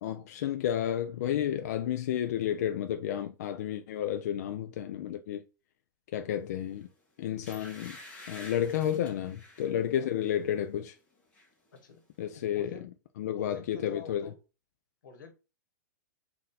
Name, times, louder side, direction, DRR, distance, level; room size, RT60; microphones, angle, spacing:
voice 1, 0.0-5.4 6.1-6.9 7.2-8.0 8.3-11.0 12.2-12.7 13.2-14.3, left 10 dB, 55° left, 0.4 m, -31 dB
sound 1, 6.7-6.9 7.4-9.7 10.2-10.4 10.8-11.5 11.8-11.9, left 2 dB, 10° left, 1.0 m, -49 dB
voice 2, 11.7-12.0 12.3-12.9 13.4-14.4 15.0-15.3, left 5 dB, 90° left, 1.3 m, -48 dB
4.1 x 2.6 x 4.0 m
supercardioid pair, 165°, 10 cm